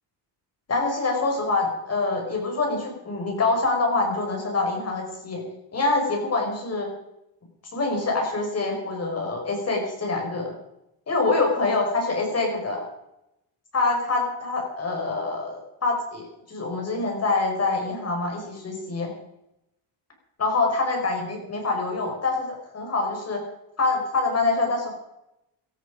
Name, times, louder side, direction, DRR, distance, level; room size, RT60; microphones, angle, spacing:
voice 1, 0.7-5.4 5.7-6.9 7.7-10.5 11.1-12.8 13.7-19.1 20.4-23.4 23.8-24.9, left 3 dB, 35° left, 1 dB, 5.7 m, -25 dB
17.5 x 13.5 x 5.2 m, 0.86 s
cardioid pair, 135°, 44 cm